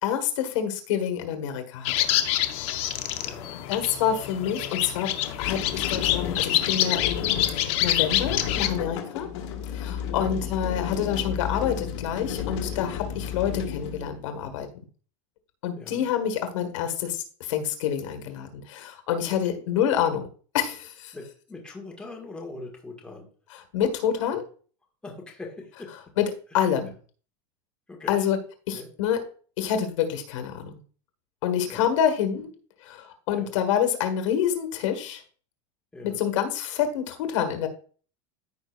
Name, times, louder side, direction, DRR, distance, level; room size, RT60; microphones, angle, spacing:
voice 1, 0.0-1.9 3.7-5.1 5.4-9.3 9.7-14.7 15.6-20.3 20.5-21.1 23.7-24.4 26.2-26.9 28.1-28.4 28.7-29.2 29.6-30.8 31.4-32.5 32.8-35.2 36.0-37.7, left 9 dB, 80° left, 7 dB, 1.6 m, -27 dB
sound 1, 1.8-8.7, left 13 dB, 40° left, 0.7 m, -26 dB
voice 2, 3.2-3.5 10.1-10.4 13.3-13.4 15.8-16.0 19.3-19.4 19.7-19.9 21.1-23.3 25.0-25.9 27.9-28.1 28.7-28.9 31.7-31.9 33.3-33.5 35.9-36.2, left 3 dB, 5° left, -1 dB, 1.6 m, -41 dB
sound 2, 5.2-14.7, left 8 dB, 65° left, 1.7 m, -33 dB
14.5 x 5.2 x 2.4 m, 0.42 s
supercardioid pair, 165°, 16 cm